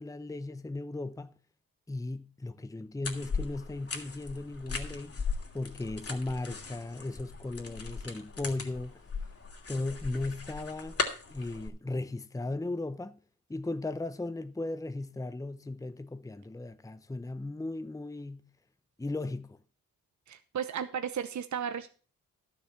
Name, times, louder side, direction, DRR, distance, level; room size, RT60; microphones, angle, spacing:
voice 1, 0.0-1.3 1.9-5.2 5.5-9.0 9.7-11.0 11.3-13.2 13.5-18.4 19.0-19.6, left 2 dB, 10° left, 0.8 m, -36 dB
sound 1, 3.0-11.7, left 4 dB, 40° left, 2.9 m, -38 dB
voice 2, 20.3-21.9, right 8 dB, 55° right, 1.0 m, -34 dB
12.0 x 7.1 x 6.0 m
cardioid pair, 60°, 35 cm